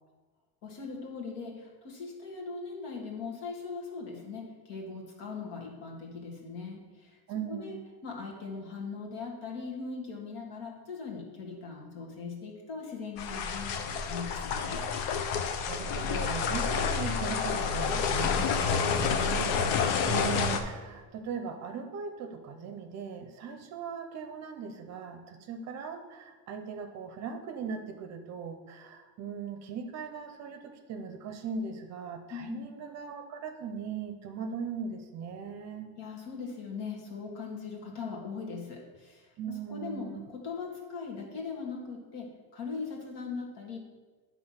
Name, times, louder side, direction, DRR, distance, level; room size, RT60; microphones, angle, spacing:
voice 1, 0.6-7.2 7.5-14.8 32.3-32.7 36.0-43.8, left 4 dB, 65° left, -1 dB, 2.0 m, -40 dB
voice 2, 7.3-7.8 15.7-35.9 39.4-40.2, right 6 dB, 40° right, 7 dB, 0.6 m, -39 dB
sound 1, 13.2-20.6, left 6 dB, 85° left, 0.8 m, -29 dB
10.0 x 3.6 x 5.7 m, 1.3 s
cardioid pair, 175°, 43 cm